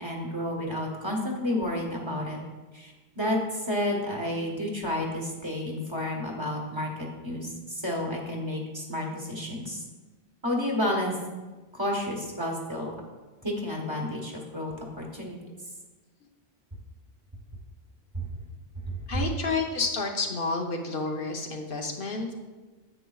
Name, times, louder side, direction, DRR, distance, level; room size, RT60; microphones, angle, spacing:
voice 1, 0.0-2.4 2.7-6.9 7.2-9.8 10.4-11.1 11.7-12.9 13.4-15.4 18.1-18.3 18.9-19.0, left 1 dB, 25° right, -1 dB, 1.3 m, -31 dB
voice 2, 19.1-22.3, left 3 dB, 65° left, 2 dB, 0.9 m, -30 dB
9.9 x 8.0 x 2.3 m, 1.2 s
omnidirectional pair, 1.0 m